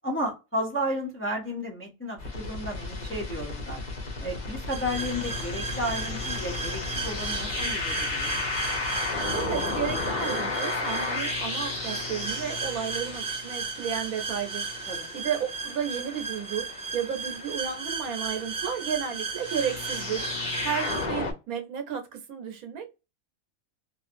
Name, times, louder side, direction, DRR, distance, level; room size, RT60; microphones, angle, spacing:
voice 1, 0.0-3.8 4.2-8.5 14.9-15.1 20.4-20.7, equal, 15° left, 0.6 m, -33 dB
sound 1, 2.2-21.3, left 3 dB, 35° left, 1.0 m, -34 dB
sound 2, 4.7-21.1, right 5 dB, 35° right, 0.5 m, -35 dB
voice 2, 9.3-14.7 15.1-20.3 20.6-22.9, right 8 dB, 80° right, 1.2 m, -32 dB
3.1 x 2.5 x 2.5 m
omnidirectional pair, 1.5 m